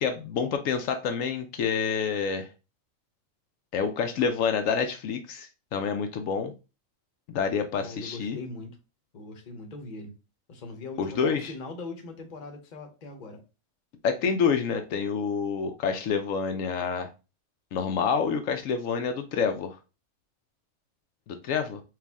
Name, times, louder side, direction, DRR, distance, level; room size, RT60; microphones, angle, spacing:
voice 1, 0.0-2.5 3.7-6.5 7.3-8.4 11.0-11.5 14.0-17.1 17.7-19.8 21.3-21.8, left 6 dB, 80° left, 6 dB, 1.0 m, -28 dB
voice 2, 7.8-8.8 9.1-10.1 10.5-13.4, left 3 dB, 40° left, 4 dB, 0.9 m, -41 dB
4.6 x 2.4 x 3.5 m, 0.30 s
omnidirectional pair, 1.4 m